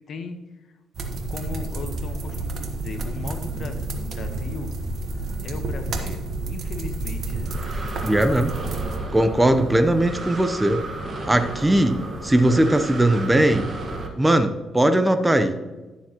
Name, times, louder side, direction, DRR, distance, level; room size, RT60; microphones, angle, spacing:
voice 1, 0.1-0.4 0.7-0.8 1.3-4.7 5.4-7.5, left 4 dB, 60° left, 7 dB, 1.2 m, -37 dB
sound 1, 0.9-9.0, right 2 dB, 60° right, 1.3 m, -30 dB
Breathing, 7.0-14.1, right 2 dB, 35° right, 1.6 m, -33 dB
voice 2, 8.0-8.5 9.1-10.8 11.3-13.7 14.2-15.6, right 1 dB, 10° right, 9 dB, 0.8 m, -19 dB
11.5 x 7.1 x 3.0 m, 1.2 s
cardioid pair, 90°, 0 cm